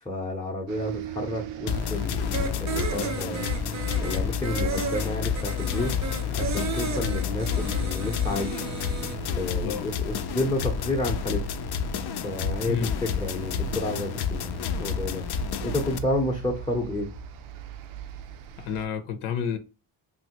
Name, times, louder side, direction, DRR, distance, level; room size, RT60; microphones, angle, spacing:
voice 1, 0.0-3.7 4.0-5.9 6.3-8.6 9.0-9.1 9.4-11.4 12.2-15.2 15.6-17.1, left 1 dB, 10° left, 0.6 m, -31 dB
sound 1, 0.7-18.9, right 7 dB, 80° right, 0.6 m, -40 dB
sound 2, 1.7-16.0, left 7 dB, 55° left, 0.5 m, -30 dB
sound 3, 2.3-9.2, right 5 dB, 35° right, 0.5 m, -34 dB
voice 2, 12.7-13.0 18.6-19.6, left 7 dB, 90° left, 0.8 m, -30 dB
3.0 x 2.6 x 2.9 m
cardioid pair, 100°, 48 cm